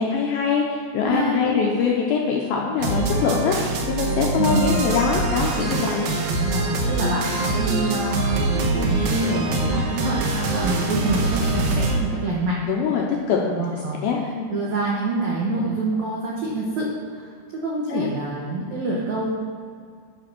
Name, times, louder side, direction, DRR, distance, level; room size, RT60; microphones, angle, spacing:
voice 1, 0.0-3.6 3.9-6.1 12.7-13.4 14.0-14.5 17.9-18.1, left 6 dB, 80° left, -2 dB, 2.3 m, -23 dB
voice 2, 1.0-1.6 4.4-4.9 6.3-12.6 13.5-14.0 14.5-19.3, right 2 dB, 85° right, -4 dB, 1.6 m, -26 dB
sound 1, 2.8-12.0, right 2 dB, 70° right, 2.5 m, -24 dB
11.0 x 5.2 x 6.0 m, 2.1 s
omnidirectional pair, 5.2 m